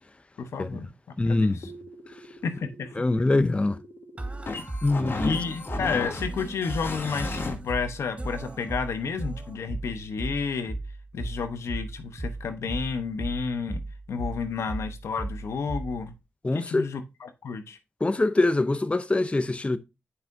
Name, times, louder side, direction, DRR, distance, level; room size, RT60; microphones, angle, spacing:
voice 1, 0.4-0.9 1.2-1.7 2.4-3.0 5.2-10.8 11.1-13.8 14.1-16.1 16.5-17.8, left 5 dB, 80° left, 0.9 m, -31 dB
voice 2, 1.2-1.6 3.0-3.8 4.8-5.4 16.4-16.9 18.0-19.8, left 2 dB, 25° left, 0.6 m, -23 dB
sound 1, 1.6-7.5, left 3 dB, 55° left, 1.6 m, -36 dB
sound 2, 4.2-16.2, right 2 dB, 25° right, 0.9 m, -36 dB
7.9 x 5.6 x 2.6 m
cardioid pair, 50°, 5 cm